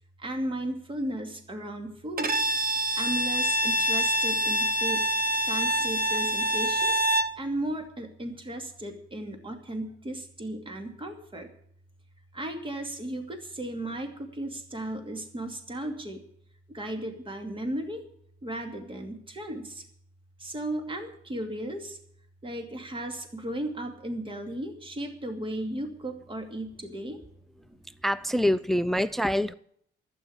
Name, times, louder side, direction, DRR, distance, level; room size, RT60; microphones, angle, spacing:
voice 1, 0.2-2.4 2.9-5.0 5.5-6.9 7.4-11.5 12.3-16.2 16.7-18.0 18.4-19.8 20.4-22.0 22.4-27.2, right 1 dB, 25° right, 5 dB, 2.5 m, -35 dB
Bowed string instrument, 2.2-7.4, right 1 dB, 50° right, 1.2 m, -26 dB
voice 2, 28.0-29.5, equal, ahead, 16 dB, 0.5 m, -25 dB
12.0 x 9.1 x 8.7 m, 0.67 s
cardioid pair, 90°, 20 cm